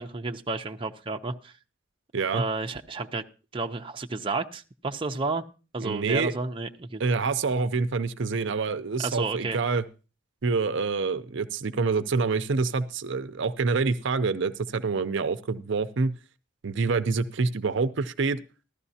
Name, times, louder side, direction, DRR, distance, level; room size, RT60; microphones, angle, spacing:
voice 1, 0.0-1.5 2.3-3.2 3.5-5.4 5.7-7.0 9.0-9.6, right 3 dB, 25° right, 4 dB, 0.6 m, -31 dB
voice 2, 5.8-6.3 7.0-9.8 10.4-16.1 16.6-18.4, right 4 dB, 60° right, 11 dB, 0.6 m, -26 dB
15.0 x 12.5 x 2.8 m, 0.34 s
head